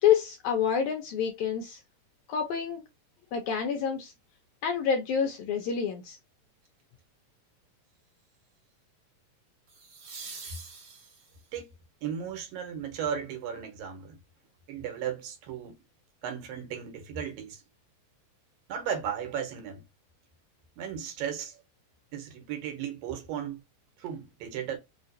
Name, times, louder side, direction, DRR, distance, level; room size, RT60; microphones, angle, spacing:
voice 1, 0.0-1.8 2.3-2.8 3.3-4.1 4.6-6.2, left 8 dB, 75° left, 1.8 m, -27 dB
sound 1, 6.6-7.0 9.7-11.5 14.4-14.5, right 4 dB, 60° right, 1.0 m, -45 dB
voice 2, 12.0-14.2 14.7-15.8 16.2-17.6 18.7-19.8 20.8-21.6 22.1-23.6 24.0-24.8, right 8 dB, 80° right, 2.8 m, -35 dB
5.6 x 2.5 x 2.6 m
omnidirectional pair, 4.0 m